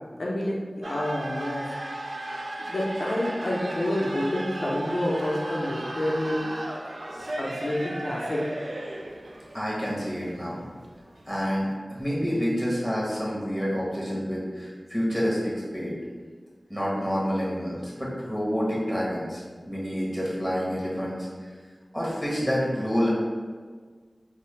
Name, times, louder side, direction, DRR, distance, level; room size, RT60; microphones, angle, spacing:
voice 1, 0.2-1.6 2.6-6.4 7.4-8.4, left 1 dB, 70° left, -5 dB, 0.5 m, -28 dB
sound 1, 0.8-11.7, right 1 dB, 75° right, 0.3 m, -36 dB
voice 2, 9.5-10.6 11.3-16.0 16.7-21.3 21.9-23.1, equal, 5° right, -6 dB, 1.1 m, -28 dB
3.2 x 2.0 x 3.1 m, 1.5 s
wide cardioid pair, 40°, 0 cm